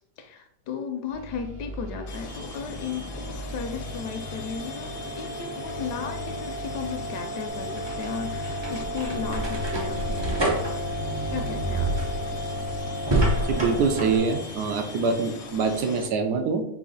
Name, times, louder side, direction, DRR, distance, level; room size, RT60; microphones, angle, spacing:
voice 1, 0.2-10.6 11.3-12.0, left 6 dB, 75° left, 6 dB, 1.2 m, -35 dB
sound 1, 1.1-14.4, equal, 55° right, 1.4 m, -34 dB
sound 2, 2.1-16.1, left 4 dB, 60° left, 0.9 m, -40 dB
sound 3, 7.6-14.2, right 1 dB, 35° right, 0.4 m, -29 dB
voice 2, 13.5-16.6, right 5 dB, 75° right, 6 dB, 1.1 m, -25 dB
4.8 x 2.8 x 3.8 m, 0.76 s
omnidirectional pair, 1.8 m